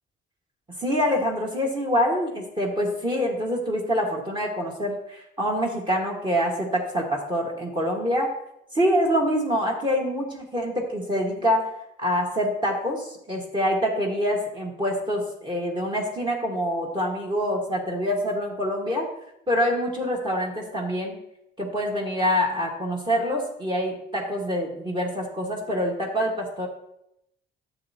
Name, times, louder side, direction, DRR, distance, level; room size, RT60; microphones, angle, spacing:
voice 1, 0.8-8.3 8.7-11.7 12.0-19.1 19.5-21.2 21.6-26.7, equal, 25° right, 0 dB, 1.7 m, -25 dB
10.5 x 7.4 x 2.9 m, 0.81 s
cardioid pair, 90°, 20 cm